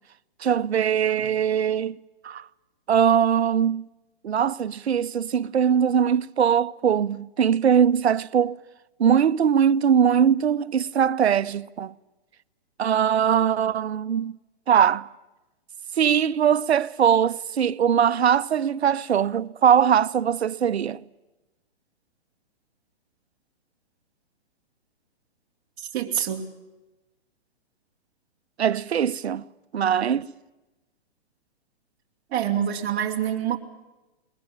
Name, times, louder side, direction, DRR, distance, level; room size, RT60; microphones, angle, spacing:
voice 1, 0.4-2.0 2.2-2.5 2.9-3.9 4.2-8.6 9.0-11.9 12.8-14.4 14.7-15.1 16.0-21.0 28.6-29.4 29.7-30.3, right 8 dB, 90° right, 0.8 m, -21 dB
voice 2, 25.8-26.5 32.3-33.6, right 10 dB, 30° right, 2.6 m, -26 dB
22.0 x 20.5 x 8.7 m
hypercardioid pair, 145°, 31 cm